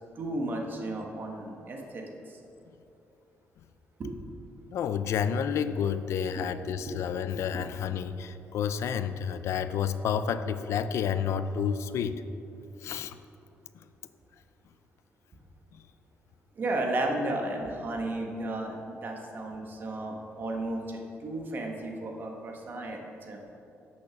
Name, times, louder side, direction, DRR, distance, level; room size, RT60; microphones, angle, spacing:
voice 1, 0.1-2.4 4.0-4.1 6.4-6.5 6.9-7.0 16.5-23.4, right 2 dB, 40° right, 1 dB, 1.3 m, -34 dB
voice 2, 4.7-12.2 12.8-13.2, left 7 dB, 75° left, 12 dB, 0.4 m, -30 dB
8.7 x 6.4 x 5.9 m, 2.8 s
cardioid pair, 125°, 5 cm